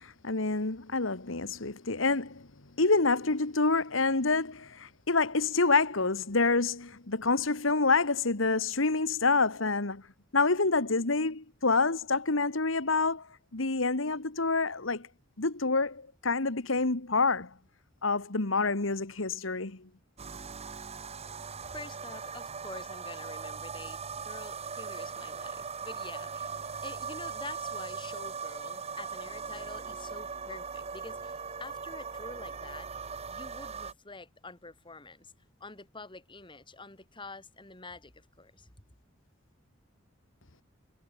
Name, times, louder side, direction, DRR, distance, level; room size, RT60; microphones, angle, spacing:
voice 1, 0.0-2.5 2.8-10.0 10.3-13.3 13.5-15.1 15.4-17.5 18.0-19.9, left 3 dB, 70° left, 1.7 m, -27 dB
sound 1, 20.2-33.9, right 5 dB, 30° right, 0.9 m, -39 dB
voice 2, 21.6-32.9 33.3-35.3 35.6-38.7, left 3 dB, 25° left, 3.4 m, -47 dB
head